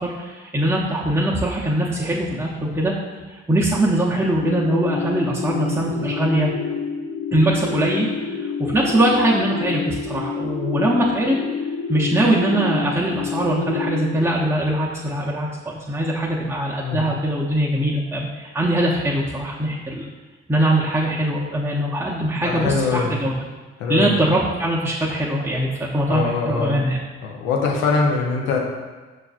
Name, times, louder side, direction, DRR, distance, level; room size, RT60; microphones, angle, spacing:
voice 1, 0.0-2.9 3.3-6.5 7.3-11.4 11.9-20.1 20.5-23.3 23.9-27.0, right 1 dB, 10° right, -6 dB, 0.6 m, -22 dB
sound 1, 4.4-14.2, left 5 dB, 45° left, 0.4 m, -28 dB
voice 2, 22.4-23.1 23.8-24.2 26.1-26.7 27.2-28.6, left 4 dB, 90° left, 0 dB, 0.6 m, -22 dB
6.0 x 2.4 x 2.4 m, 1.3 s
hypercardioid pair, 45°, 30 cm